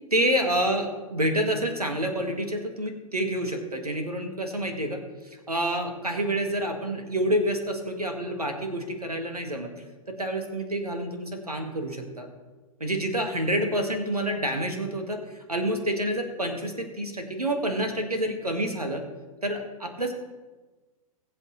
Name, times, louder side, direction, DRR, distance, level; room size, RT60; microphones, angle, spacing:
voice 1, 0.1-9.7 10.1-12.3 12.8-19.0 19.4-20.1, right 1 dB, 85° right, 5 dB, 2.0 m, -28 dB
20.0 x 8.4 x 3.3 m, 1.3 s
figure-of-eight pair, 105°, 19 cm